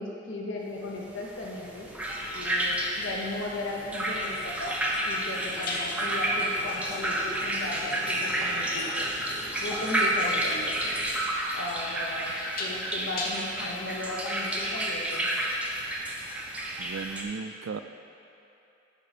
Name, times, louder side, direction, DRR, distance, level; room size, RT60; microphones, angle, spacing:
voice 1, 0.0-1.9 2.3-4.8 5.1-9.1 9.6-10.7 11.5-12.3 12.6-15.3, left 2 dB, 80° left, -2 dB, 0.8 m, -36 dB
sound 1, 1.3-17.2, right 1 dB, 5° right, 0.5 m, -30 dB
sound 2, 1.8-11.1, right 1 dB, 35° right, 1.7 m, -48 dB
sound 3, 3.2-3.4 5.6-13.7, left 2 dB, 50° left, 0.8 m, -39 dB
voice 2, 16.8-17.8, right 5 dB, 90° right, 10 dB, 0.4 m, -36 dB
8.2 x 5.4 x 4.1 m, 2.9 s
head